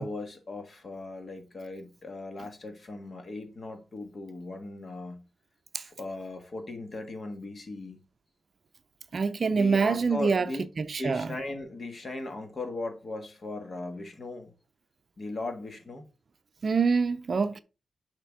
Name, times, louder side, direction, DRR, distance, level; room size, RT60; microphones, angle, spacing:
voice 1, 0.0-5.2 5.8-8.0 9.5-10.6 11.0-14.5 15.2-16.0, left 2 dB, 45° left, 1.6 m, -38 dB
voice 2, 9.1-11.3 16.6-17.6, right 5 dB, 50° right, 0.5 m, -26 dB
6.8 x 5.1 x 3.7 m
cardioid pair, 95°, 0 cm